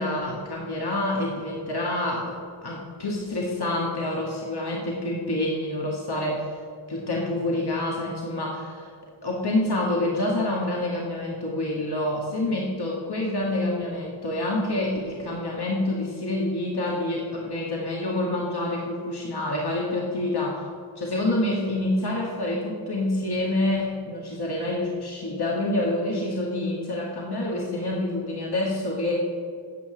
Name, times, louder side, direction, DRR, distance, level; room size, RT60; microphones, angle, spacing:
voice 1, 0.0-6.5 6.9-8.9 9.2-20.6 21.0-29.2, left 1 dB, 50° left, -3 dB, 2.2 m, -27 dB
15.5 x 5.7 x 8.2 m, 2.2 s
cardioid pair, 45°, 49 cm